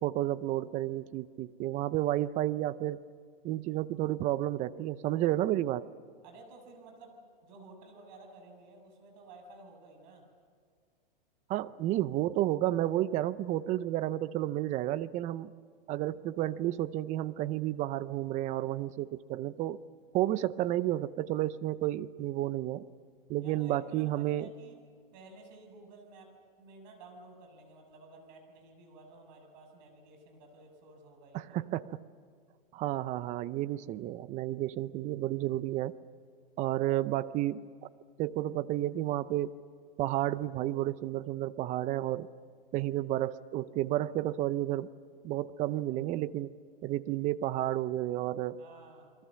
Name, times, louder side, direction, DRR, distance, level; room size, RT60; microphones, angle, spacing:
voice 1, 0.0-3.0 3.4-5.9 11.5-15.5 15.9-19.8 20.1-22.9 23.3-24.5 31.3-32.0 32.7-36.0 36.6-37.6 38.2-39.5 40.0-42.3 42.7-44.9 45.2-46.5 46.8-48.6, right 14 dB, 25° right, 17 dB, 0.6 m, -31 dB
voice 2, 6.2-7.1 7.4-10.2 23.4-24.8 25.1-26.3 26.6-31.5 48.6-49.1, right 3 dB, 50° right, 4 dB, 7.0 m, -53 dB
29.5 x 22.5 x 7.5 m, 2.1 s
hypercardioid pair, 130°, 29 cm